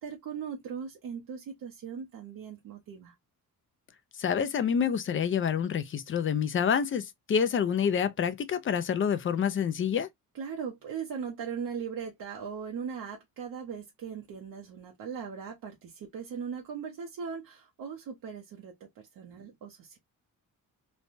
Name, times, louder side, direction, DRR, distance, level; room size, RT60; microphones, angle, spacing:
voice 1, 0.0-3.1 10.3-20.0, right 6 dB, 70° right, 0.7 m, -39 dB
voice 2, 4.2-10.1, left 7 dB, 35° left, 0.4 m, -27 dB
3.2 x 2.1 x 2.5 m
wide cardioid pair, 145°, 35 cm